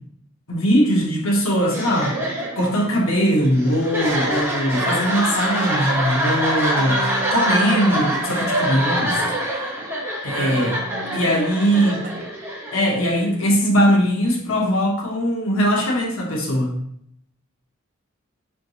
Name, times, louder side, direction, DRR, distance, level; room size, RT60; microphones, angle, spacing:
voice 1, 0.5-2.1 2.5-7.0 7.3-9.2 9.5-9.7 10.2-10.8 11.1-12.0 12.7-16.7, equal, 85° left, -1 dB, 1.0 m, -20 dB
sound 1, 1.7-13.4, equal, 10° right, 0.8 m, -25 dB
voice 2, 4.7-5.1 6.8-7.7 10.3-11.3 11.7-12.3, right 3 dB, 50° right, 6 dB, 0.5 m, -33 dB
3.9 x 3.4 x 2.8 m, 0.71 s
head